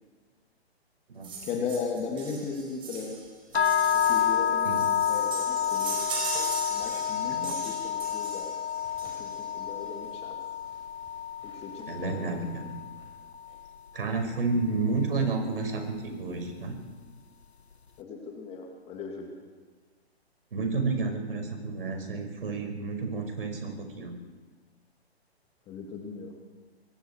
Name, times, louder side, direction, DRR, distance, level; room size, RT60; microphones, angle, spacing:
sound 1, 1.2-9.6 10.6-10.7 11.1-11.2 11.4-11.5 11.9-12.5 13.0-13.1, right 4 dB, 15° right, 4.6 m, -39 dB
voice 1, 1.4-3.2 3.9-4.7 5.0-6.0 6.7-8.5 9.0-10.4 11.4-12.1 18.0-19.3 25.7-26.4, left 5 dB, 20° left, 2 dB, 2.4 m, -37 dB
sound 2, 3.5-13.6, left 9 dB, 75° left, 1.0 m, -29 dB
voice 2, 11.9-12.8 13.9-16.8 20.5-24.1, right 3 dB, 55° right, 4 dB, 5.7 m, -31 dB
25.0 x 22.5 x 4.7 m, 1.4 s
figure-of-eight pair, 125°, 32 cm